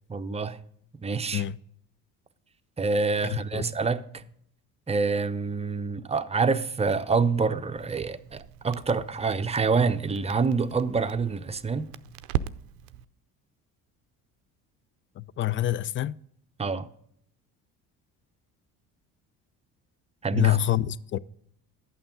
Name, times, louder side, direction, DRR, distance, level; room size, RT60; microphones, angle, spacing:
voice 1, 0.1-0.6 1.0-1.4 2.8-4.2 4.9-11.9 16.6-16.9 20.2-20.6, right 4 dB, 15° right, 0.6 m, -27 dB
voice 2, 3.3-3.6 15.2-16.1 20.3-21.2, left 13 dB, 30° left, 0.4 m, -26 dB
Crackle, 7.8-13.0, right 11 dB, 80° right, 0.6 m, -38 dB
11.5 x 8.7 x 3.7 m
hypercardioid pair, 60°, 45 cm